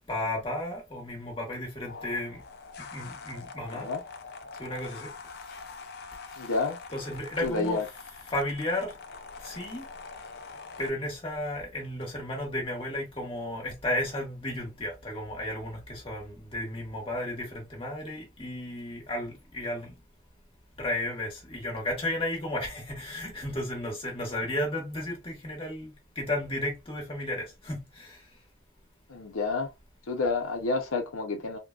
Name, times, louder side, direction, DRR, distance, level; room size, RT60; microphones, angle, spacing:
voice 1, 0.1-2.4 2.9-3.9 4.6-5.1 6.9-7.8 8.3-8.9 9.4-9.8 10.8-19.9 20.8-28.2, left 1 dB, 25° left, 1.2 m, -33 dB
sound 1, 1.9-10.9, left 4 dB, 50° left, 0.5 m, -44 dB
voice 2, 6.4-6.8 7.4-7.8 29.1-29.7 30.1-31.6, left 3 dB, 85° left, 0.7 m, -29 dB
3.7 x 2.2 x 2.3 m
head